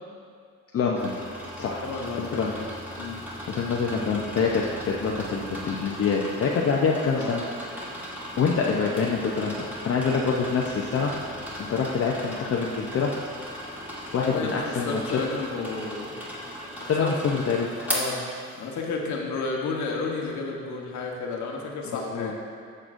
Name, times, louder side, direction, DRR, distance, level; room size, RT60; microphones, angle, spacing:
voice 1, 0.7-1.1 1.6-1.8 2.3-2.5 3.5-7.4 8.4-11.1 11.6-13.1 14.1-15.0 16.8-17.7 21.9-22.3, left 5 dB, 50° left, -2 dB, 0.7 m, -26 dB
sound 1, 0.9-18.9, equal, 5° right, 1.8 m, -37 dB
voice 2, 1.7-2.7 3.0-3.2 7.1-7.4 14.1-16.1 16.8-17.1 17.9-18.2 18.5-22.3, left 4 dB, 70° left, 0 dB, 1.2 m, -31 dB
9.8 x 6.7 x 2.6 m, 2.2 s
cardioid pair, 90°, 30 cm